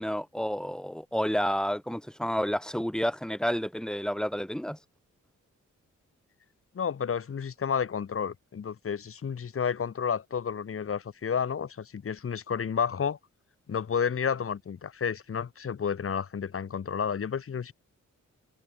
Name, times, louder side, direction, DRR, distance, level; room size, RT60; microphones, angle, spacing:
voice 1, 0.0-4.8, equal, ahead, 3.1 m, -30 dB
voice 2, 6.7-13.2 13.7-17.7, left 7 dB, 45° left, 2.7 m, -31 dB
wide cardioid pair, 170°, 30 cm